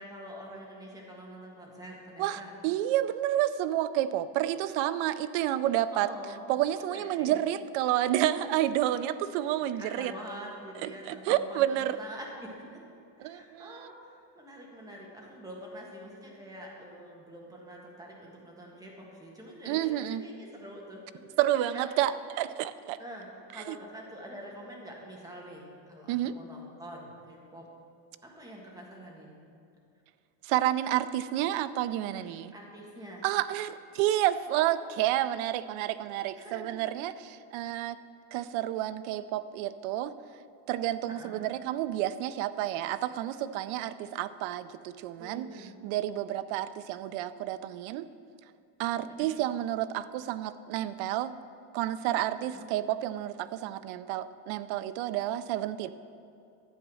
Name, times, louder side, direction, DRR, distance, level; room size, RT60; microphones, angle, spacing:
voice 1, 0.0-2.5 5.9-6.5 6.9-7.4 9.8-12.8 13.2-21.2 21.7-21.8 23.0-27.7 28.2-29.4 32.1-33.2 36.3-36.8 41.1-41.4 45.2-45.8 49.1-49.3 52.4-52.7, equal, 10° right, -2 dB, 1.7 m, -46 dB
voice 2, 2.2-6.1 6.5-10.1 10.8-12.0 13.2-13.9 19.7-20.2 21.4-23.0 23.7-23.8 26.1-26.3 30.4-32.5 33.2-38.0 38.3-40.1 40.7-48.1 48.8-51.3 51.7-55.9, right 13 dB, 75° right, 13 dB, 0.6 m, -30 dB
12.0 x 8.2 x 6.3 m, 2.5 s
cardioid pair, 175°, 47 cm